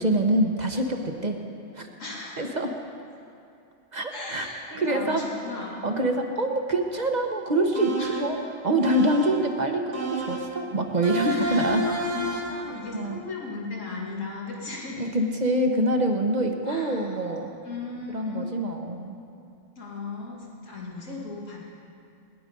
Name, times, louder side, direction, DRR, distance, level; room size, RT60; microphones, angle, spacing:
voice 1, 0.0-1.4 1.7-1.9 2.4-2.7 3.9-4.5 4.8-5.2 5.8-8.4 8.6-11.8 12.9-13.2 15.0-17.5 18.1-19.2, right 1 dB, 35° right, 3 dB, 1.2 m, -25 dB
voice 2, 2.0-2.5 4.1-5.8 8.0-8.2 11.1-15.0 16.7-17.4 17.6-18.5 19.8-21.6, left 3 dB, 85° left, -3 dB, 2.4 m, -37 dB
sound 1, 7.7-8.4 8.8-9.5 9.9-10.6 11.0-12.7, right 2 dB, 70° right, 2.2 m, -30 dB
20.5 x 11.0 x 5.4 m, 2.7 s
omnidirectional pair, 1.3 m